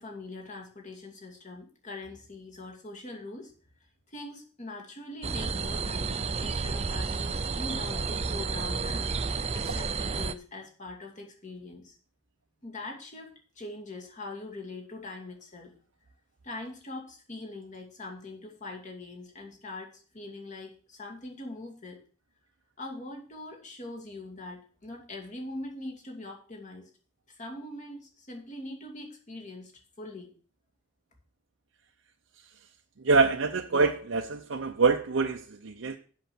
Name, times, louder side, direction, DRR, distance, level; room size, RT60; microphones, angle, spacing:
voice 1, 0.0-3.5 4.1-12.0 12.6-15.7 16.4-22.0 22.8-26.9 27.3-29.7 30.0-30.3, left 2 dB, 40° left, 1 dB, 2.4 m, -42 dB
sound 1, 5.2-10.3, right 4 dB, 30° right, 0.5 m, -31 dB
voice 2, 33.0-36.0, right 4 dB, 75° right, 4 dB, 0.7 m, -25 dB
7.9 x 6.3 x 7.1 m, 0.41 s
head